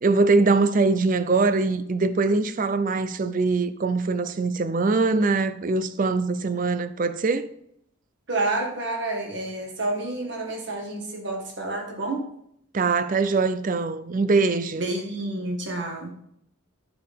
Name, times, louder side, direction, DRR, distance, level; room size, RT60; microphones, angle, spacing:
voice 1, 0.0-7.5 12.7-14.8, right 3 dB, 40° right, 0.5 m, -22 dB
voice 2, 8.3-12.3 14.8-16.1, right 2 dB, 55° right, 1.8 m, -29 dB
12.5 x 4.8 x 3.6 m
head